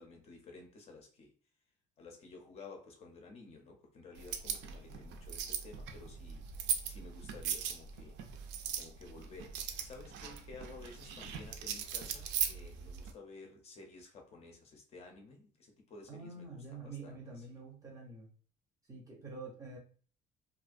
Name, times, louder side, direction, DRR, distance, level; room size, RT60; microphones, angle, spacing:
voice 1, 0.0-1.3 2.0-6.4 6.8-8.2 8.7-17.6, left 3 dB, 35° left, 2 dB, 0.5 m, -53 dB
sound 1, 4.2-13.1, right 8 dB, 85° right, 0.4 m, -39 dB
voice 2, 16.1-18.3 18.9-19.8, right 3 dB, 20° right, -2 dB, 0.5 m, -47 dB
2.5 x 2.0 x 2.4 m, 0.42 s
cardioid pair, 175°, 18 cm